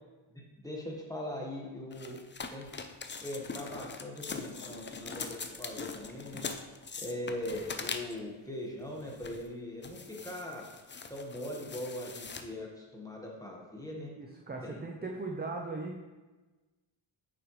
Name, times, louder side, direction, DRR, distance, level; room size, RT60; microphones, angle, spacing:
voice 1, 0.3-2.2 2.5-2.7 3.2-6.5 7.0-10.6 11.1-14.1 14.6-14.8, left 1 dB, 5° left, -2 dB, 1.4 m, -40 dB
sound 1, 1.9-8.3 8.9-9.5 9.8-12.4, left 4 dB, 25° left, 0.4 m, -42 dB
voice 2, 13.9-16.1, right 3 dB, 20° right, 0 dB, 0.6 m, -39 dB
8.9 x 6.3 x 3.2 m, 1.2 s
wide cardioid pair, 130°, 48 cm